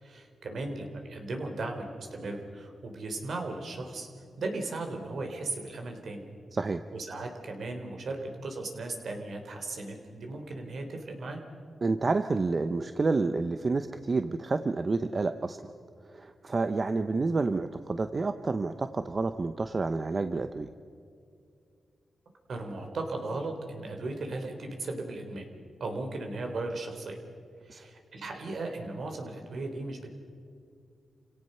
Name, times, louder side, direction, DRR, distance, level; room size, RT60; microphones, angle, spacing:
voice 1, 0.0-4.1 4.4-6.2 6.9-11.4 22.5-25.5 25.8-27.2 27.6-30.1, right 2 dB, 65° right, 4 dB, 3.6 m, -36 dB
voice 2, 11.8-15.7 16.1-20.7 27.7-27.8, right 3 dB, 40° right, 9 dB, 0.7 m, -29 dB
28.5 x 17.5 x 5.7 m, 2.4 s
cardioid pair, 85°, 0 cm